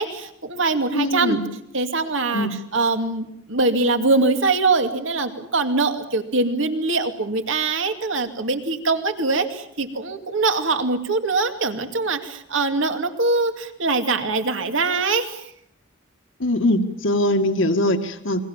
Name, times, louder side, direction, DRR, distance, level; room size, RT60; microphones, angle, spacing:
voice 1, 0.0-1.4 1.7-15.4, right 3 dB, 65° right, 7 dB, 2.5 m, -23 dB
voice 2, 0.9-1.4 2.3-2.6 16.4-18.4, left 1 dB, 65° left, 6 dB, 1.8 m, -21 dB
29.5 x 22.5 x 7.3 m, 0.72 s
head